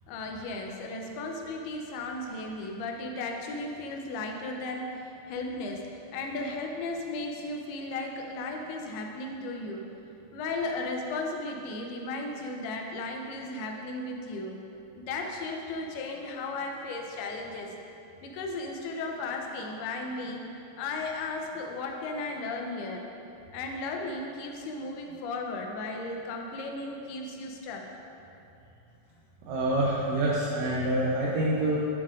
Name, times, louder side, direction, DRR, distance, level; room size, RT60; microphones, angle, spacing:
voice 1, 0.1-5.9 6.1-9.9 10.3-14.6 15.0-17.7 18.2-20.5 20.8-23.0 23.5-27.8, left 2 dB, 85° left, 1 dB, 2.6 m, -35 dB
voice 2, 29.4-31.9, right 1 dB, 90° right, -4 dB, 1.9 m, -26 dB
10.5 x 7.4 x 2.5 m, 2.8 s
omnidirectional pair, 4.6 m